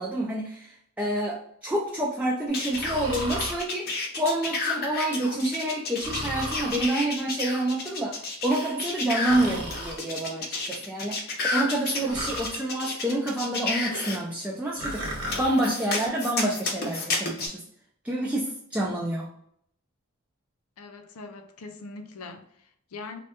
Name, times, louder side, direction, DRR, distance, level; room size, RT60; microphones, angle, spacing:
voice 1, 0.0-17.6 18.0-19.3, right 1 dB, 5° right, 0.3 m, -28 dB
sound 1, 2.5-14.2 15.3-17.5, left 3 dB, 45° left, 0.6 m, -31 dB
Breathing, 2.7-3.6 6.0-6.9 9.2-10.0 12.1-12.6 14.8-15.5, equal, 75° right, 1.0 m, -34 dB
voice 2, 20.8-23.2, left 3 dB, 85° left, 0.5 m, -42 dB
3.3 x 2.2 x 2.8 m
head